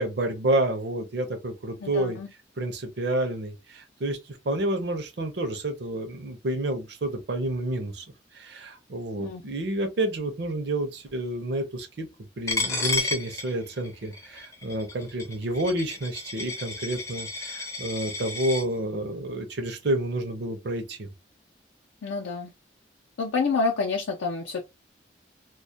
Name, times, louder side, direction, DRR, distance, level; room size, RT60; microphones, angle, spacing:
voice 1, 0.0-2.2 2.6-4.2 4.4-8.0 8.3-12.1 12.4-21.1, right 1 dB, 60° right, 0.5 m, -29 dB
voice 2, 1.8-2.3 9.2-9.4 22.0-22.5 23.2-24.6, left 4 dB, 85° left, 0.5 m, -28 dB
Coin (dropping), 12.5-18.6, left 3 dB, 15° left, 0.4 m, -32 dB
2.2 x 2.1 x 2.6 m
head